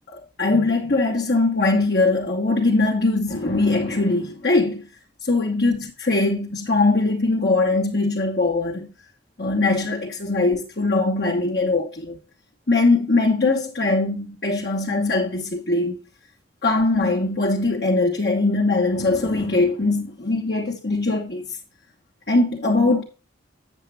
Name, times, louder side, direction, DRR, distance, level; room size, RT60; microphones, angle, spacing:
voice 1, 0.1-4.9 5.2-8.9 9.4-12.2 12.7-16.0 16.6-21.4 22.3-23.0, left 2 dB, 55° left, 1.2 m, -21 dB
8.0 x 7.4 x 3.3 m
head